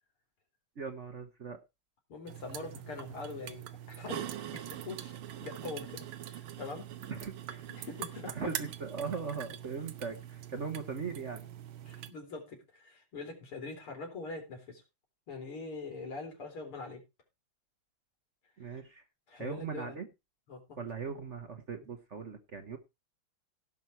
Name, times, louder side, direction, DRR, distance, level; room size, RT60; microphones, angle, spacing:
voice 1, 0.8-1.6 7.1-7.7 8.3-11.5 18.6-19.0 19.4-20.1 20.8-22.8, right 5 dB, 45° right, 6 dB, 1.1 m, -39 dB
voice 2, 2.1-4.3 4.5-6.9 7.7-8.5 11.9-14.8 15.3-17.0 18.7-18.8 19.3-20.0 20.5-20.8, left 3 dB, 90° left, 2 dB, 4.8 m, -43 dB
sound 1, 2.3-12.1, right 11 dB, 90° right, 1.8 m, -43 dB
17.0 x 6.1 x 4.4 m, 0.26 s
omnidirectional pair, 2.3 m